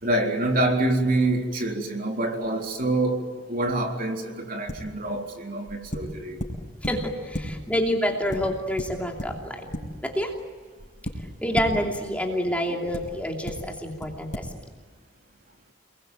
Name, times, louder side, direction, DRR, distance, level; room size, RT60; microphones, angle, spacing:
voice 1, 0.0-6.4, right 2 dB, 45° right, 2 dB, 3.8 m, -26 dB
sound 1, 4.7-5.0 5.7-7.8 8.3-10.4 10.8-12.1 12.9-13.0 13.4-13.5 14.0-14.1 14.3-14.4, equal, 40° left, 5.5 m, -34 dB
voice 2, 6.8-10.3 11.4-14.5, equal, 5° left, 1 dB, 2.8 m, -28 dB
29.5 x 22.0 x 9.1 m, 1.5 s
head